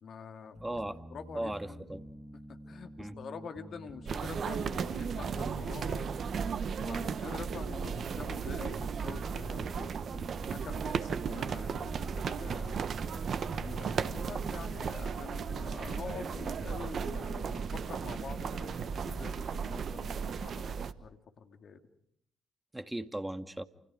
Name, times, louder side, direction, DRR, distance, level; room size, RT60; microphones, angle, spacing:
voice 1, 0.0-0.6 1.1-1.9 2.5-6.2 6.8-12.8 13.5-21.8, left 6 dB, 55° left, 6 dB, 2.8 m, -46 dB
sound 1, 0.5-19.3, equal, 10° left, 7.1 m, -48 dB
voice 2, 0.6-1.0 1.3-2.1 3.0-3.1 22.7-23.6, right 1 dB, 15° right, 9 dB, 2.2 m, -37 dB
sound 2, 4.1-20.9, right 6 dB, 55° right, 1.2 m, -35 dB
29.0 x 29.0 x 5.0 m, 0.70 s
hypercardioid pair, 40°, 0 cm